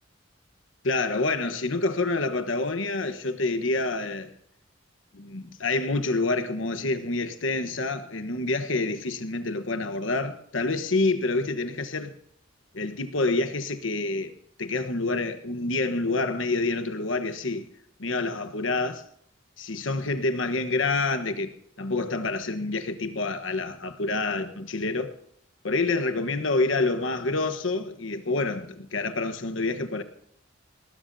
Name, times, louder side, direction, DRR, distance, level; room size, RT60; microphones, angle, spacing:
voice 1, 0.8-4.3 5.1-12.1 12.7-14.3 14.6-17.7 18.0-19.0 19.6-25.1 25.6-30.0, left 3 dB, 75° left, 1.2 m, -27 dB
19.5 x 19.5 x 2.8 m
head